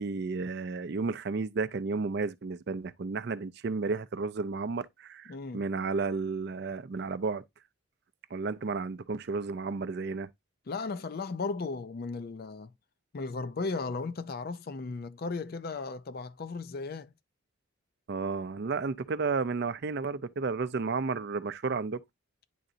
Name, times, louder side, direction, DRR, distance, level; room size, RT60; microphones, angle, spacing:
voice 1, 0.0-7.4 8.3-10.3 18.1-22.0, right 4 dB, 50° right, 0.4 m, -32 dB
voice 2, 5.3-5.6 10.7-12.7 13.1-17.1, left 4 dB, 45° left, 0.4 m, -36 dB
10.0 x 3.9 x 2.5 m
head